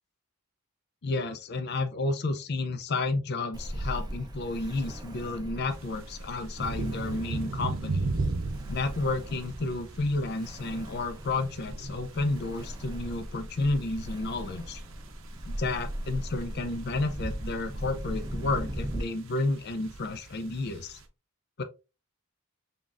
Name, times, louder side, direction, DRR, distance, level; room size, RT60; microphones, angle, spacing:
voice 1, 1.0-8.1 8.7-14.8 15.5-21.0 21.6-21.7, left 2 dB, 45° left, 0.4 m, -31 dB
Ocean, 3.5-19.0, equal, 20° right, 0.5 m, -39 dB
sound 1, 5.7-21.0, right 3 dB, 60° right, 0.6 m, -38 dB
3.9 x 3.6 x 2.4 m
head